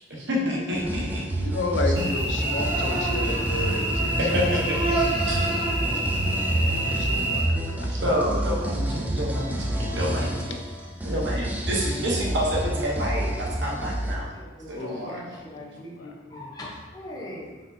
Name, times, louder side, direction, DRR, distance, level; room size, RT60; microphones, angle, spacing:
voice 1, 0.1-1.2 1.9-2.1 3.2-3.3 4.0-4.9 5.3-5.4 6.9-7.0 7.9-10.6 11.0-14.3 14.7-15.2, equal, 65° right, -3 dB, 1.0 m, -29 dB
sound 1, 0.7-14.2, right 1 dB, 10° right, 0.4 m, -28 dB
voice 2, 1.4-4.4 5.3-5.8 6.5-7.9 8.8-9.3 11.0-11.1 14.8-15.3 15.7-16.1, left 3 dB, 70° left, 3 dB, 0.5 m, -33 dB
Cricket / Buzz, 2.0-7.4, right 1 dB, 25° right, 0.9 m, -27 dB
voice 3, 14.3-17.6, left 1 dB, 20° left, -5 dB, 0.8 m, -40 dB
4.1 x 4.1 x 2.7 m, 1.2 s
head